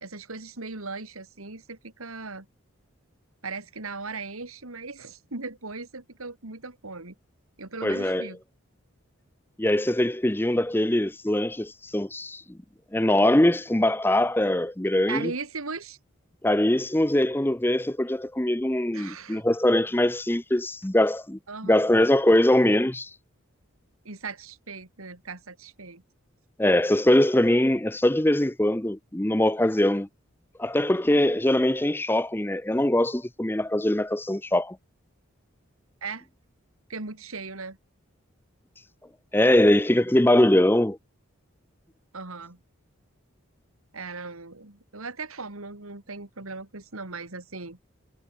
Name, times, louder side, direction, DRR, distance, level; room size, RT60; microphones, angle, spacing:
voice 1, 0.0-2.5 3.4-7.1 7.6-8.4 15.1-16.0 18.9-19.4 21.5-21.8 24.0-26.0 36.0-36.3 36.9-37.8 42.1-42.6 43.9-47.8, right 4 dB, 85° right, 2.8 m, -38 dB
voice 2, 7.8-8.3 9.6-12.6 12.9-15.3 16.4-23.1 26.6-30.1 30.6-34.8 39.3-41.0, left 1 dB, 10° left, 0.6 m, -22 dB
head